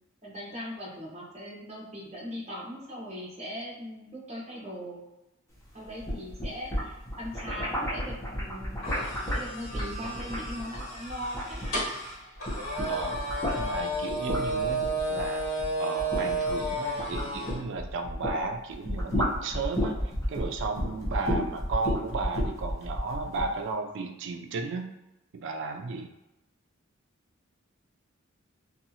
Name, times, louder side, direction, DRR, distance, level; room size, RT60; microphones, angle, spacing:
voice 1, 0.2-5.1 5.7-8.7 9.3-11.9, equal, 35° right, -4 dB, 0.8 m, -39 dB
sound 1, 5.8-12.1 12.3-18.4 18.7-23.5, equal, 15° left, 0.7 m, -32 dB
sound 2, 8.8-17.6, right 2 dB, 80° left, 1.2 m, -32 dB
voice 2, 12.9-13.2 13.6-15.5 15.8-20.0 20.3-24.9 25.3-26.1, right 3 dB, 60° right, 5 dB, 0.4 m, -34 dB
2.7 x 2.3 x 2.7 m, 0.94 s
head